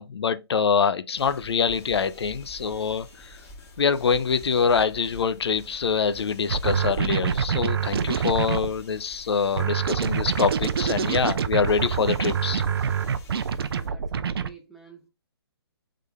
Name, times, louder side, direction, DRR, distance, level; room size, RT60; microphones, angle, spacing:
voice 1, 0.0-3.3 3.8-12.6, left 6 dB, 75° left, 0.5 m, -25 dB
sound 1, 1.1-13.9, left 2 dB, 20° left, 1.6 m, -47 dB
sound 2, 6.5-8.7 9.6-14.5, right 7 dB, 65° right, 0.5 m, -26 dB
voice 2, 13.7-15.1, right 5 dB, ahead, 0.9 m, -49 dB
3.7 x 3.3 x 3.5 m
hypercardioid pair, 140°, 14 cm